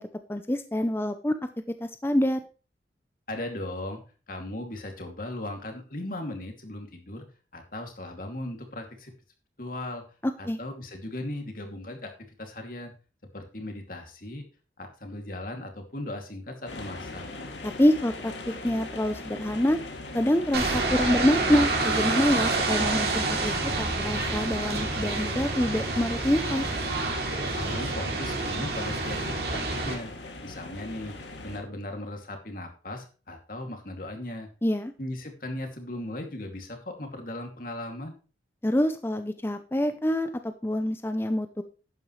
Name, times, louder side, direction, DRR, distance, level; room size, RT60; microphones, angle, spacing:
voice 1, 0.3-1.4 1.8-2.4 10.2-10.6 17.6-18.3 18.6-19.8 20.1-26.7 34.6-34.9 38.6-41.6, left 1 dB, 15° left, 8 dB, 0.6 m, -26 dB
voice 2, 3.3-4.0 4.3-7.2 7.5-9.1 9.6-10.0 10.4-12.1 12.4-12.9 13.3-14.4 14.8-17.2 27.6-30.1 30.4-31.1 31.4-34.5 35.0-38.2, left 1 dB, 50° left, 4 dB, 2.6 m, -37 dB
sound 1, 16.7-31.6, left 2 dB, 85° left, 2.5 m, -41 dB
sound 2, 20.5-29.9, right 3 dB, 60° right, 3.0 m, -28 dB
11.5 x 9.3 x 3.2 m, 0.36 s
head